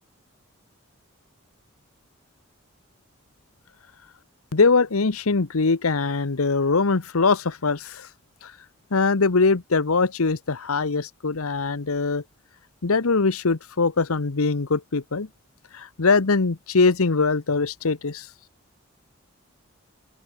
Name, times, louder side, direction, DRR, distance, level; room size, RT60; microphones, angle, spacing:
voice 1, 4.5-8.1 8.4-8.5 8.9-12.2 12.8-15.3 15.7-18.3, left 4 dB, 85° left, 1.0 m, -22 dB
open air
head